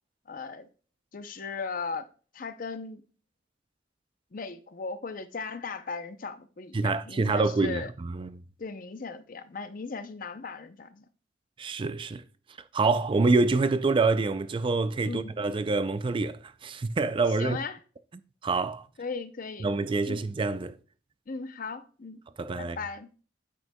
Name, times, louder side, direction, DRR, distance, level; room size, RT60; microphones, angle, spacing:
voice 1, 0.3-0.7 1.1-2.1 2.3-3.0 4.3-7.9 8.6-11.1 15.0-15.3 17.4-17.8 19.0-19.7 20.0-20.3 21.3-22.2 22.6-23.1, left 4 dB, 50° left, 0.6 m, -37 dB
voice 2, 6.7-8.4 11.6-12.2 12.7-17.6 18.4-18.9 19.6-20.8 22.4-22.8, right 3 dB, 30° right, 0.3 m, -26 dB
9.3 x 8.0 x 2.2 m
head